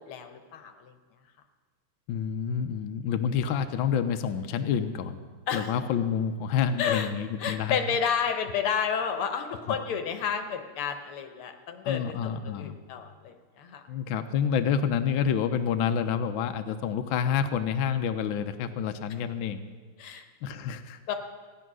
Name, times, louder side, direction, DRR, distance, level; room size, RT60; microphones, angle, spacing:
voice 1, 0.1-0.9 5.5-5.7 6.8-7.1 7.4-13.8 20.0-20.3 21.1-21.2, left 7 dB, 90° left, 7 dB, 1.9 m, -31 dB
voice 2, 2.1-5.2 5.5-7.8 9.7-9.8 11.8-12.8 13.9-19.6 20.4-21.0, left 7 dB, 70° left, 8 dB, 1.4 m, -28 dB
15.5 x 10.0 x 6.1 m, 1.5 s
omnidirectional pair, 2.3 m